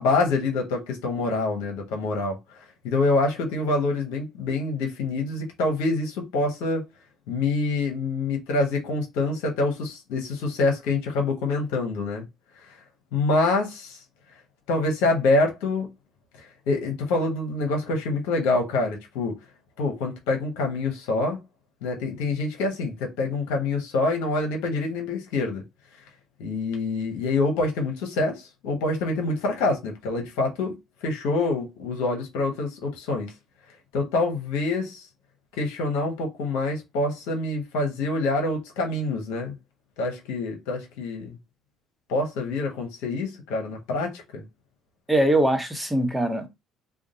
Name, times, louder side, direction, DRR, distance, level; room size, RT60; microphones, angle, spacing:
voice 1, 0.0-2.4 2.8-6.8 7.3-12.3 13.1-14.0 14.7-15.9 16.4-19.4 19.8-21.4 21.8-25.6 26.4-30.8 31.0-33.3 33.9-35.0 35.6-39.6 40.0-41.4 42.1-44.4, left 2 dB, 75° left, 0.9 m, -26 dB
voice 2, 45.1-46.5, right 1 dB, 5° right, 1.0 m, -22 dB
2.5 x 2.2 x 4.0 m
hypercardioid pair, 65°, 0 cm